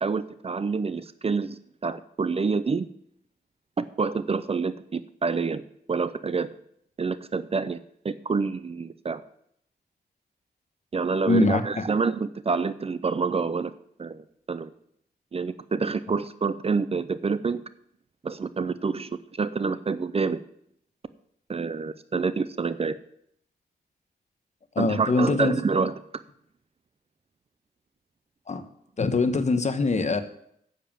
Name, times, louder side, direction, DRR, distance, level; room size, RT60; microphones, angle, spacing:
voice 1, 0.0-2.9 3.8-5.6 5.9-6.5 7.0-7.8 8.0-9.2 10.9-13.7 14.0-14.7 15.3-17.6 18.2-19.1 19.4-20.4 21.5-23.0 24.8-25.9, right 4 dB, 35° right, 14 dB, 0.6 m, -27 dB
voice 2, 11.3-11.8 24.7-25.5 28.5-28.6 29.0-30.2, left 3 dB, 45° left, 9 dB, 1.2 m, -23 dB
10.0 x 7.3 x 7.4 m, 0.69 s
wide cardioid pair, 115°, 17 cm